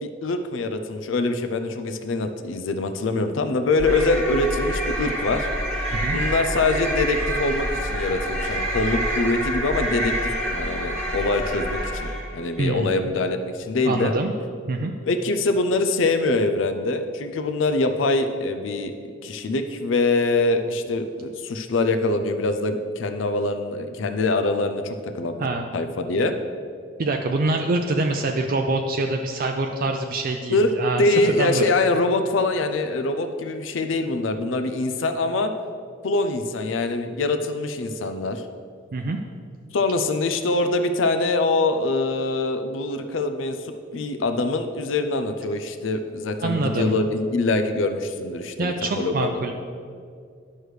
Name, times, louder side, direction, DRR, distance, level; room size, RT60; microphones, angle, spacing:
voice 1, 0.0-5.5 6.1-14.1 15.0-18.9 19.2-25.5 25.7-26.3 30.5-30.7 31.0-35.5 36.0-38.4 39.7-43.6 43.9-49.5, left 2 dB, 85° left, 8 dB, 0.5 m, -24 dB
sound 1, 3.8-12.4, equal, 5° left, 1.8 m, -27 dB
voice 2, 12.6-12.9 13.8-14.3 14.7-14.9 25.4-25.7 27.0-31.6 38.9-39.2 46.4-46.9 48.6-49.5, right 2 dB, 50° right, 3 dB, 0.4 m, -25 dB
11.0 x 6.4 x 3.2 m, 2.3 s
head